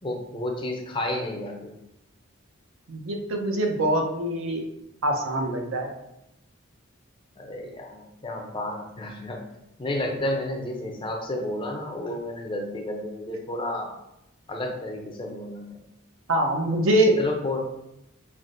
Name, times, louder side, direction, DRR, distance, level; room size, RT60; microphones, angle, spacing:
voice 1, 0.0-1.7 7.4-9.4 9.8-14.0 14.5-15.8 17.2-17.6, left 1 dB, 25° left, 1 dB, 0.5 m, -31 dB
voice 2, 2.9-4.6 5.0-5.9 16.3-17.2, right 1 dB, 70° right, 2 dB, 0.7 m, -24 dB
5.7 x 2.6 x 2.5 m, 0.84 s
head